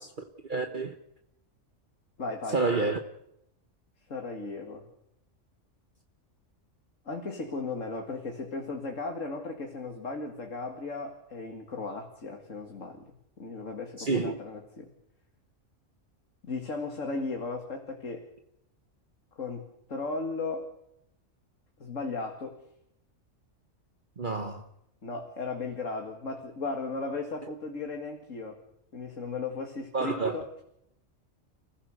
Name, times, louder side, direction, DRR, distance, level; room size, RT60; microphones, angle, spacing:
voice 1, 0.5-0.9 2.5-3.0 14.0-14.4 24.2-24.6 29.9-30.4, right 3 dB, 40° right, 1.4 m, -28 dB
voice 2, 2.2-2.6 4.1-4.9 7.1-13.0 13.4-14.9 16.5-18.3 19.4-19.6 19.9-20.7 21.8-22.6 25.0-28.6 28.9-30.5, left 3 dB, 80° left, 2.6 m, -36 dB
30.0 x 15.5 x 6.6 m
omnidirectional pair, 1.3 m